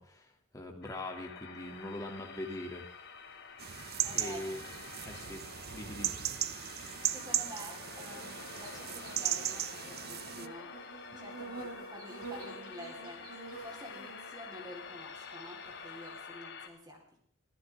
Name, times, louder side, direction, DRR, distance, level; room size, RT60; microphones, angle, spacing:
voice 1, 0.0-2.9 4.1-4.6 5.1-5.4 5.7-6.2, left 1 dB, 15° left, 2 dB, 2.8 m, -42 dB
sound 1, 0.8-16.7, left 5 dB, 50° left, 2.3 m, -48 dB
sound 2, 1.6-16.2, right 3 dB, 90° right, 5.7 m, -51 dB
sound 3, 3.6-10.5, right 12 dB, 45° right, 0.7 m, -37 dB
voice 2, 4.0-4.4 7.1-10.7 11.1-17.2, equal, 20° right, 0 dB, 4.2 m, -49 dB
24.5 x 15.5 x 3.7 m, 0.65 s
head